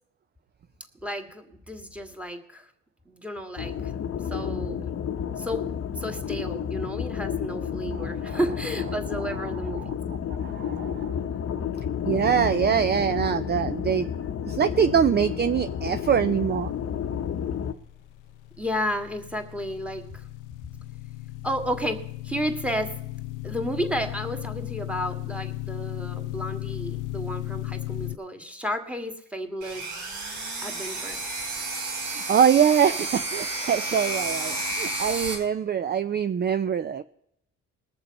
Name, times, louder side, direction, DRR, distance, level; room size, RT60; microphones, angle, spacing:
voice 1, 1.0-2.7 3.1-3.9 4.2-5.0 5.4-5.6 6.0-9.9 18.6-20.3 21.4-22.9 23.4-30.1 30.6-31.2, equal, 5° right, 6 dB, 1.9 m, -32 dB
sound 1, 3.6-17.7, left 8 dB, 50° left, 0.8 m, -31 dB
voice 2, 10.3-11.1 12.1-14.1 14.5-16.7 32.1-37.0, right 8 dB, 35° right, 12 dB, 0.5 m, -24 dB
sound 2, 17.3-28.2, left 18 dB, 90° left, 0.5 m, -36 dB
sound 3, 29.6-35.3, right 2 dB, 80° right, 5.0 m, -31 dB
20.5 x 6.9 x 5.4 m, 0.75 s
cardioid pair, 90°, 30 cm